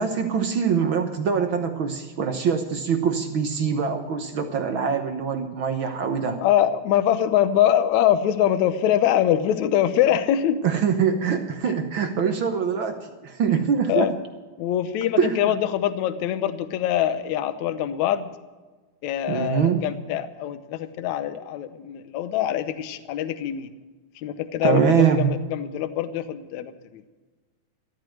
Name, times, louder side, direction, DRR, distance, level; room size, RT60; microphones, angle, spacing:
voice 1, 0.0-6.4 10.6-14.1 15.2-15.5 19.3-19.8 24.6-25.4, right 6 dB, 70° right, 6 dB, 1.2 m, -23 dB
voice 2, 6.4-10.6 13.9-14.1 14.6-18.3 19.0-23.7 24.2-27.0, left 11 dB, 70° left, 11 dB, 2.1 m, -23 dB
13.5 x 13.0 x 6.4 m, 1.3 s
omnidirectional pair, 3.7 m